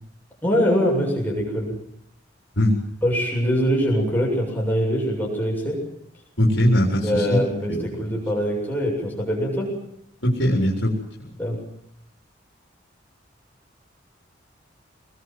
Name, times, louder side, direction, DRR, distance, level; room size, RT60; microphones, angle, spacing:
voice 1, 0.4-1.8 3.0-5.8 7.0-9.7 11.4-11.6, equal, 10° left, -2 dB, 7.4 m, -23 dB
voice 2, 6.4-7.4 7.7-7.8 10.2-10.9 11.3-11.4, equal, 70° left, -2 dB, 4.1 m, -20 dB
26.0 x 21.0 x 7.8 m, 0.77 s
head